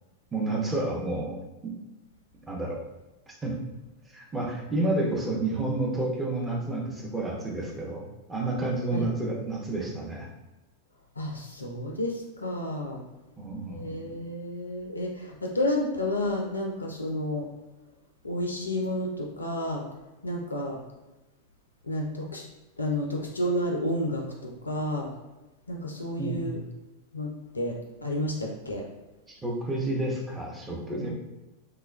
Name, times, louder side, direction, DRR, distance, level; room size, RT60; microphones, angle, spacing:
voice 1, 0.3-1.4 1.6-1.7 2.5-2.8 3.3-3.5 4.1-10.3 13.4-14.1 26.2-26.6 29.3-31.1, right 2 dB, 10° right, -3 dB, 0.6 m, -30 dB
voice 2, 11.2-13.0 13.7-17.5 18.2-19.8 20.2-20.8 21.8-22.4 22.8-25.1 25.7-26.6 27.1-28.9 31.0-31.1, left 1 dB, 80° left, 0 dB, 0.4 m, -31 dB
3.1 x 2.1 x 2.3 m, 1.1 s
figure-of-eight pair, 90°, 0 cm